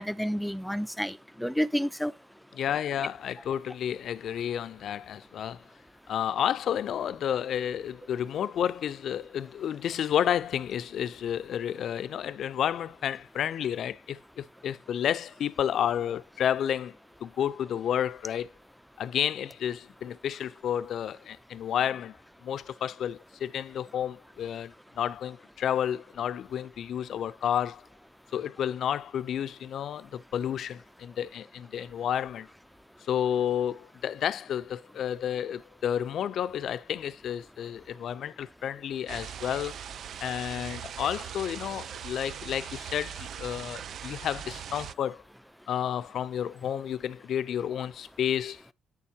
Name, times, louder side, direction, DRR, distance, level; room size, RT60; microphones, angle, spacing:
voice 1, 0.0-2.1, equal, ahead, 0.6 m, -30 dB
voice 2, 2.5-5.6 6.1-16.9 17.2-18.5 19.0-22.2 22.4-27.9 28.3-32.5 33.1-39.7 40.2-45.2 45.7-48.6, left 9 dB, 70° left, 0.5 m, -31 dB
sound 1, 39.1-44.9, right 9 dB, 65° right, 0.5 m, -40 dB
9.1 x 7.1 x 2.8 m
cardioid pair, 90°, 0 cm